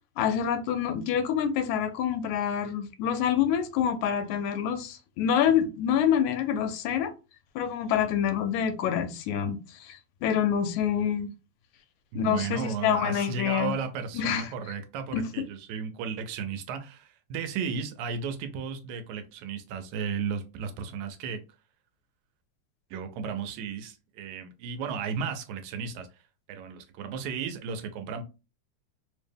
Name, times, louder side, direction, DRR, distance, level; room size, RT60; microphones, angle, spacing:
voice 1, 0.2-7.1 7.6-11.3 12.2-13.8 14.1-14.5 15.1-15.3, left 8 dB, 80° left, 1.9 m, -27 dB
voice 2, 12.1-21.4 22.9-26.2 26.5-28.2, right 6 dB, 90° right, 2.0 m, -34 dB
4.6 x 2.1 x 3.3 m
omnidirectional pair, 3.3 m